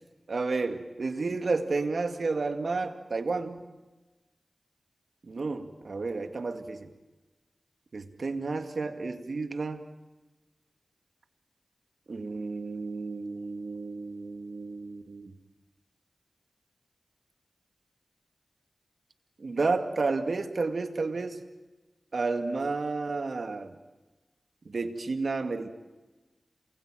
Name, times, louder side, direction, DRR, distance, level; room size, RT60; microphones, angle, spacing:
voice 1, 0.3-3.7 5.2-6.9 7.9-9.8 12.1-15.3 19.4-21.4 22.1-23.8 24.7-25.7, right 3 dB, 70° right, 7 dB, 2.3 m, -31 dB
28.0 x 21.0 x 9.1 m, 1.2 s
cardioid pair, 45°, 0 cm